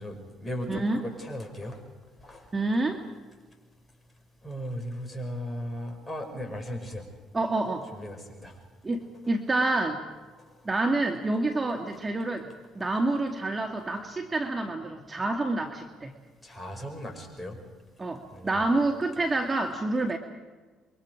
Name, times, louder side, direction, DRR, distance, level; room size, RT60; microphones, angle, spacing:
voice 1, 0.0-1.8 2.2-2.5 4.4-7.1 7.9-8.5 16.4-17.6 18.3-18.7, equal, 15° left, 3 dB, 6.1 m, -37 dB
voice 2, 0.7-1.0 2.5-3.0 7.3-7.9 8.8-10.0 10.6-12.5 12.7-16.1 18.0-20.2, right 2 dB, 25° right, 4 dB, 2.1 m, -28 dB
28.0 x 23.5 x 4.9 m, 1.3 s
hypercardioid pair, 65°, 0 cm